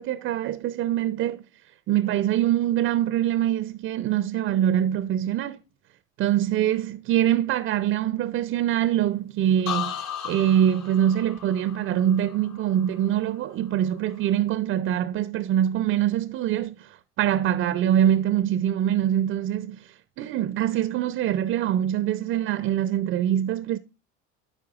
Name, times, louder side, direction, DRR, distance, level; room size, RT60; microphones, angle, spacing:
voice 1, 0.0-1.4 1.9-5.6 6.2-10.0 10.2-16.9 17.2-19.8 20.2-23.8, right 11 dB, 35° right, 0.5 m, -24 dB
sound 1, 9.7-13.5 13.8-14.3, left 9 dB, 45° left, 1.0 m, -36 dB
14.0 x 4.7 x 2.3 m
hypercardioid pair, 75°, 36 cm